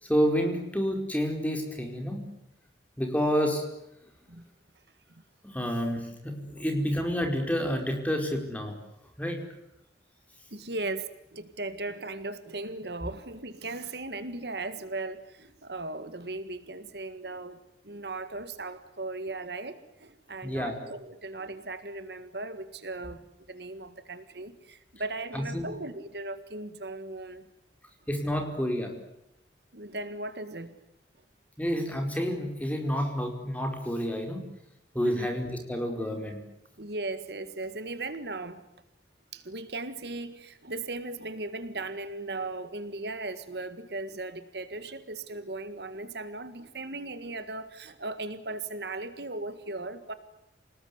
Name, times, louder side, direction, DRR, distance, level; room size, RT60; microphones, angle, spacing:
voice 1, 0.0-2.2 3.0-3.6 5.4-8.7 9.2-9.4 20.4-20.8 25.3-25.7 28.1-28.9 31.6-34.5 34.9-36.4, equal, 10° left, 4 dB, 4.7 m, -29 dB
voice 2, 10.5-23.2 23.5-27.5 29.7-30.8 35.0-35.3 36.8-38.6 39.3-50.1, right 2 dB, 65° right, 12 dB, 1.8 m, -37 dB
28.0 x 19.5 x 9.6 m, 0.84 s
head